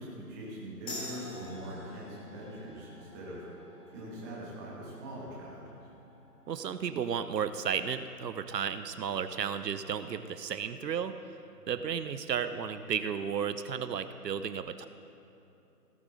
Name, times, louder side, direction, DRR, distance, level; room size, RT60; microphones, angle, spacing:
voice 1, 0.0-3.4 3.9-5.7 11.5-11.7, right 1 dB, 10° right, -6 dB, 1.5 m, -42 dB
sound 1, 0.9-8.0, left 2 dB, 40° left, 3.0 m, -49 dB
voice 2, 6.5-11.1 11.7-14.9, right 7 dB, 80° right, 11 dB, 0.7 m, -33 dB
17.5 x 8.1 x 3.8 m, 2.8 s
hypercardioid pair, 160°, 48 cm